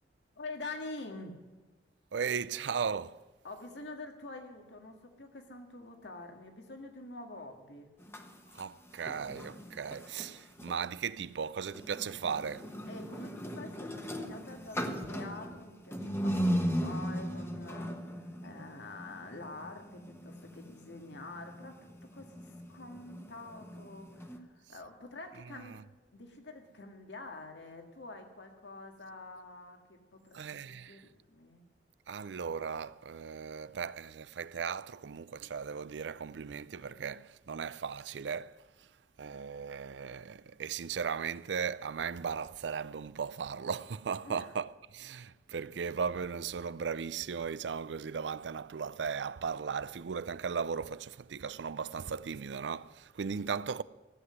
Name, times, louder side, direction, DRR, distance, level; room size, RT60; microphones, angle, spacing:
voice 1, 0.4-1.4 3.4-7.9 12.9-21.8 22.1-30.4 30.7-31.7 44.2-44.5, left 2 dB, 85° left, 1.9 m, -47 dB
voice 2, 2.1-3.2 8.5-12.7 25.5-25.8 30.3-31.0 32.1-38.9 39.2-53.8, right 6 dB, 85° right, 0.5 m, -37 dB
sound 1, 8.0-10.8 11.7-24.4, equal, 15° left, 1.1 m, -38 dB
15.0 x 7.8 x 9.5 m
head